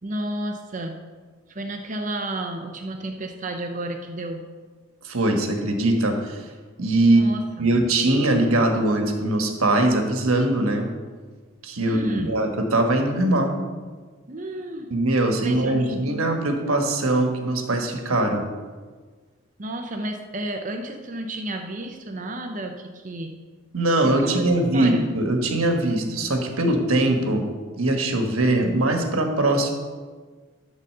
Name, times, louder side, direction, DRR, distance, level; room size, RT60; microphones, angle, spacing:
voice 1, 0.0-1.0 1.5-4.4 7.0-7.7 11.8-12.4 14.3-14.9 15.4-16.1 19.6-23.4 24.0-25.1, right 1 dB, 35° right, 4 dB, 0.6 m, -32 dB
voice 2, 5.0-6.4 6.8-7.2 7.6-10.9 11.6-13.5 14.9-18.4 23.7-27.4 27.8-29.7, right 1 dB, 90° right, 4 dB, 1.3 m, -21 dB
12.0 x 4.1 x 6.5 m, 1.4 s
head